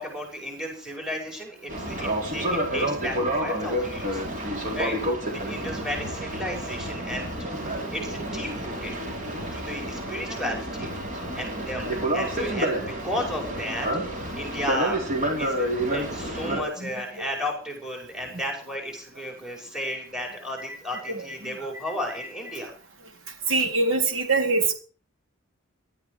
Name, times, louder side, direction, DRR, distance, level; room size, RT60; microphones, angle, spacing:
voice 1, 0.0-4.2 4.7-5.0 5.3-7.3 7.7-8.9 9.5-10.9 11.4-13.9 14.3-15.1 15.4-22.7, equal, 5° right, 2 dB, 5.9 m, -33 dB
Boat Water vehicle, 1.7-16.6, right 1 dB, 40° right, 4.2 m, -29 dB
voice 2, 16.4-16.9 19.9-20.0 20.7-20.8 21.1-21.8 23.5-24.7, right 3 dB, 70° right, 4 dB, 3.6 m, -25 dB
18.0 x 13.0 x 4.9 m, 0.40 s
head